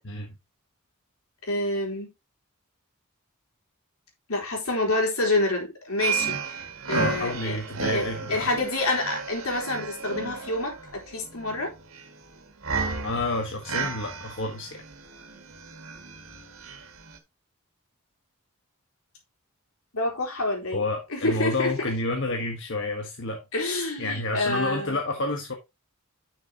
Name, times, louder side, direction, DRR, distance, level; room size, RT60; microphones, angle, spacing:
voice 1, 1.5-2.1 4.3-7.6 7.9-11.7 19.9-20.9 21.1-21.7 23.5-25.0, left 2 dB, 80° left, 3.9 m, -28 dB
sound 1, 6.0-17.2, right 5 dB, 75° right, 1.8 m, -33 dB
voice 2, 6.9-8.5 13.0-14.8 20.7-23.4 24.0-25.5, left 2 dB, 60° left, 1.4 m, -29 dB
10.5 x 6.3 x 2.9 m
head